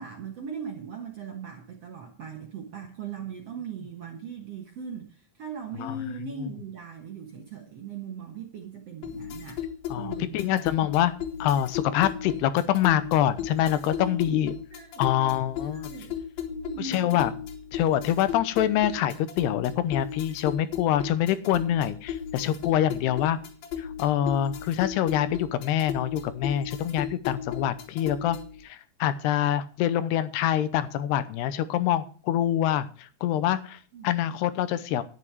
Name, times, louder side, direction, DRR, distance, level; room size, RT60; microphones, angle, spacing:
voice 1, 0.0-9.6 9.9-10.4 14.0-15.1 15.7-16.2 16.5-17.2 33.9-34.1, right 5 dB, 60° right, 3 dB, 1.6 m, -39 dB
voice 2, 5.7-6.5 9.9-14.5 15.0-15.9 16.8-17.3 17.7-23.4 23.8-28.4 28.6-35.0, left 11 dB, 85° left, 14 dB, 2.9 m, -25 dB
sound 1, 9.0-28.6, left 8 dB, 65° left, 3.0 m, -36 dB
11.0 x 10.0 x 4.8 m, 0.40 s
omnidirectional pair, 4.7 m